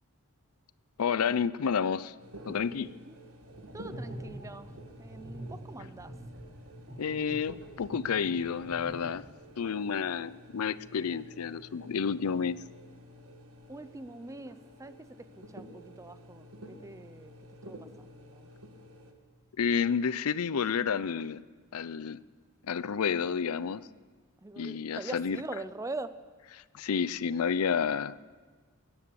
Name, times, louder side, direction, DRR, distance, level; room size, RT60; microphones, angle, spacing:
voice 1, 1.0-2.1 2.5-2.9 7.0-9.2 9.6-12.6 19.6-21.4 21.7-22.2 22.6-23.9 24.6-25.4 26.7-28.2, left 6 dB, 80° left, 18 dB, 0.5 m, -30 dB
sound 1, 2.2-19.1, equal, 80° right, 1.8 m, -51 dB
sound 2, 3.4-9.5, right 1 dB, 60° right, 4.7 m, -45 dB
voice 2, 3.7-4.7 5.0-6.1 13.7-17.3 17.6-18.5 24.4-26.2, right 2 dB, 15° right, 13 dB, 0.5 m, -43 dB
21.5 x 9.9 x 6.9 m, 1.5 s
head